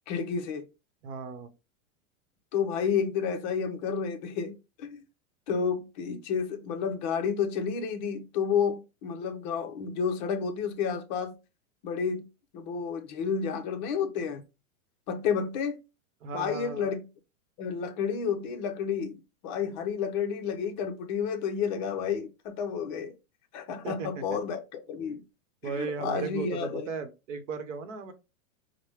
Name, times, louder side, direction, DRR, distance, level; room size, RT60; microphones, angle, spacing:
voice 1, 0.1-0.7 2.5-5.0 5.5-11.4 11.8-12.3 12.5-14.4 15.1-15.8 16.3-17.1 17.6-23.1 23.5-25.2 25.6-26.9, left 6 dB, 35° left, 0.6 m, -31 dB
voice 2, 1.0-1.5 16.2-16.9 23.8-24.1 25.6-28.1, right 5 dB, 60° right, 0.9 m, -36 dB
4.7 x 2.1 x 3.2 m
supercardioid pair, 150°, 42 cm